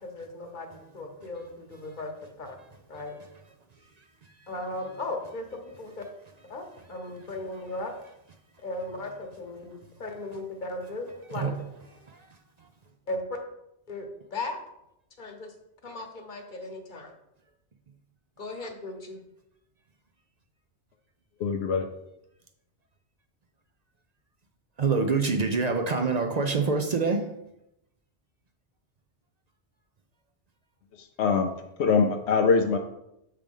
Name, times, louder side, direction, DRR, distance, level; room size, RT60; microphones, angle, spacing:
voice 1, 0.0-2.6 2.9-3.2 4.5-6.0 6.5-7.9 8.6-11.7 13.1-13.4 13.9-14.6 15.2-15.5 15.8-17.1 18.4-19.2, left 2 dB, 45° left, 3 dB, 1.1 m, -37 dB
voice 2, 21.4-21.9 31.0-31.5 31.8-32.8, left 5 dB, 70° left, 4 dB, 0.8 m, -23 dB
voice 3, 24.8-27.3, right 4 dB, 50° right, 5 dB, 0.5 m, -25 dB
7.4 x 3.4 x 5.3 m, 0.84 s
omnidirectional pair, 1.2 m